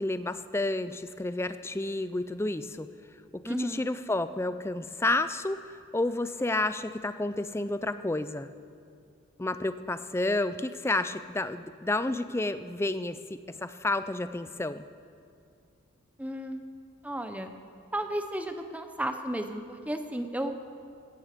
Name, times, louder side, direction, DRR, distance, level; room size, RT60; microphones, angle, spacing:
voice 1, 0.0-2.9 3.3-8.5 9.4-14.8, left 2 dB, 10° left, 12 dB, 0.4 m, -30 dB
voice 2, 3.4-3.9 16.2-16.6 17.0-17.5 17.9-20.6, right 1 dB, 5° right, 7 dB, 0.8 m, -33 dB
16.5 x 15.0 x 5.1 m, 2.5 s
head